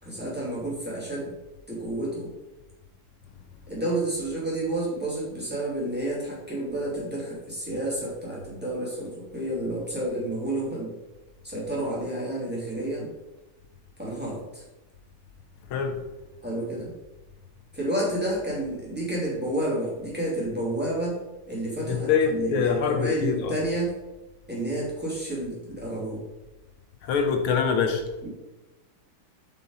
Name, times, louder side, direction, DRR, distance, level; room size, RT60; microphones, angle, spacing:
voice 1, 0.0-1.4 1.7-2.3 3.7-10.9 11.4-13.1 14.0-14.6 16.4-17.0 17.7-21.2 21.5-23.9 24.5-26.2 28.2-28.3, right 1 dB, 5° right, -6 dB, 2.5 m, -30 dB
voice 2, 21.8-23.5 27.0-28.0, left 6 dB, 80° left, 5 dB, 1.7 m, -24 dB
8.2 x 5.6 x 3.9 m, 1.0 s
omnidirectional pair, 2.3 m